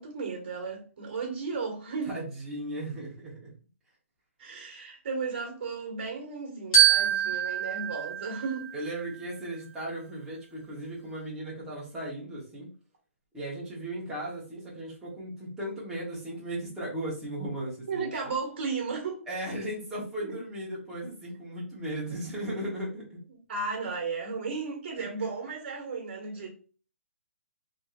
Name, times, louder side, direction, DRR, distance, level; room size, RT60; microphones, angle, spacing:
voice 1, 0.0-2.1 4.4-8.7 17.9-19.2 20.2-20.3 23.5-26.5, right 4 dB, 45° right, 1.4 m, -34 dB
voice 2, 2.1-3.5 8.7-12.7 13.3-18.1 19.3-23.2 25.0-25.3, right 1 dB, 5° right, 1.0 m, -36 dB
Glockenspiel, 6.7-9.2, right 9 dB, 30° left, 1.5 m, -25 dB
3.4 x 2.8 x 2.4 m
hypercardioid pair, 165°, 8 cm